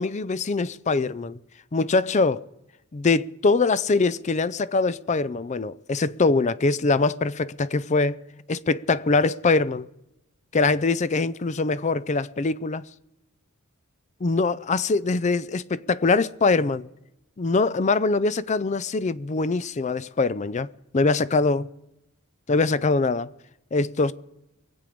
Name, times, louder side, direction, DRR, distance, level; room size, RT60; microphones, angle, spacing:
voice 1, 0.0-1.4 1.7-2.4 2.9-8.2 8.5-9.9 10.5-12.8 14.2-16.9 17.4-20.7 20.9-21.7 22.5-23.3 23.7-24.1, left 3 dB, 35° left, 0.4 m, -23 dB
23.5 x 8.6 x 5.2 m
head